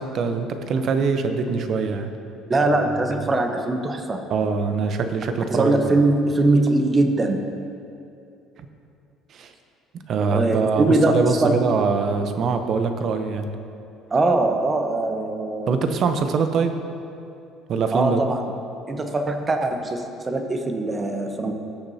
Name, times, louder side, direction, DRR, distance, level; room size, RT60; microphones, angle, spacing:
voice 1, 0.0-2.1 3.1-3.3 4.3-5.8 9.3-9.5 10.1-13.5 15.7-16.8 17.7-18.2, right 5 dB, 55° right, 7 dB, 0.8 m, -23 dB
voice 2, 2.5-4.2 5.5-7.4 10.3-11.6 14.1-15.8 17.9-18.4 18.9-21.5, right 2 dB, 30° right, 5 dB, 1.1 m, -21 dB
17.5 x 6.7 x 2.9 m, 2.7 s
hypercardioid pair, 70°, 0 cm